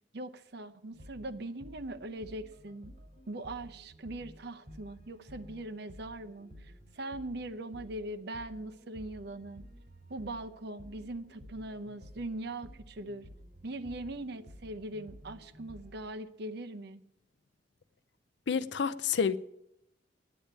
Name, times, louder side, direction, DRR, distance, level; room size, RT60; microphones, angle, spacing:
voice 1, 0.1-2.9 3.3-9.6 10.1-13.3 13.6-17.0, right 1 dB, 60° right, 0.7 m, -41 dB
sound 1, 0.9-16.1, equal, 40° right, 6.2 m, -53 dB
voice 2, 18.5-19.4, left 6 dB, 65° left, 0.5 m, -29 dB
10.0 x 8.6 x 8.7 m
head